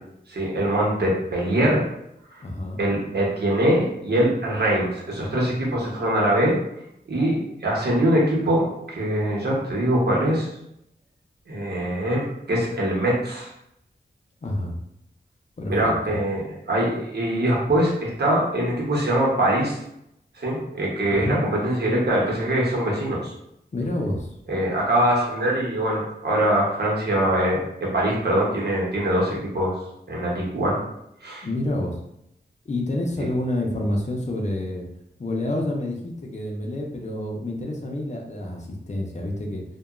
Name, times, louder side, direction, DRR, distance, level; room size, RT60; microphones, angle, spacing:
voice 1, 0.3-1.8 2.8-6.6 7.1-10.5 11.5-13.5 15.7-19.8 20.4-23.3 24.5-29.8 30.1-30.8 31.2-31.5, right 1 dB, 65° right, -4 dB, 0.9 m, -23 dB
voice 2, 2.4-2.8 14.4-14.7 15.6-16.2 21.1-21.4 23.7-24.4 31.4-32.0 32.7-34.9 35.2-39.6, left 1 dB, 40° left, 0 dB, 0.5 m, -28 dB
2.8 x 2.2 x 2.4 m, 0.80 s
wide cardioid pair, 95°, 18 cm